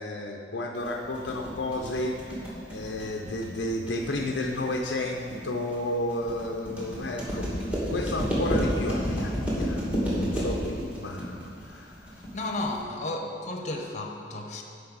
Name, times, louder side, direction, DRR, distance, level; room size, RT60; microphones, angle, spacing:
voice 1, 0.0-2.3 2.7-12.2, left 1 dB, 70° left, 1 dB, 0.6 m, -32 dB
sound 1, 0.8-12.8, equal, 10° right, 2.2 m, -31 dB
voice 2, 12.3-14.6, left 2 dB, 40° left, 3 dB, 0.9 m, -33 dB
13.0 x 5.3 x 4.0 m, 2.4 s
head